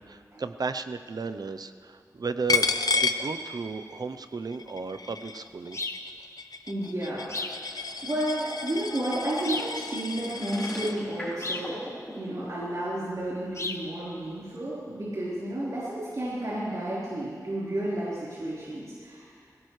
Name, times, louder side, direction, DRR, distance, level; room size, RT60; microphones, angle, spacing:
voice 1, 0.0-2.7 2.9-5.8, right 4 dB, 75° right, 10 dB, 0.7 m, -34 dB
Coin (dropping), 2.5-4.0 4.3-11.0, left 4 dB, 70° left, 0.7 m, -31 dB
sound 1, 5.7-6.1 7.3-7.6 9.4-9.8 11.4-11.7 13.5-13.9, left 2 dB, 45° left, 0.9 m, -34 dB
voice 2, 6.7-7.3 7.7-11.8 12.1-19.3, right 1 dB, 55° right, -10 dB, 4.2 m, -32 dB
sound 2, 10.4-12.5, equal, 5° left, 4.6 m, -39 dB
22.0 x 17.5 x 3.2 m, 2.2 s
wide cardioid pair, 75°, 7 cm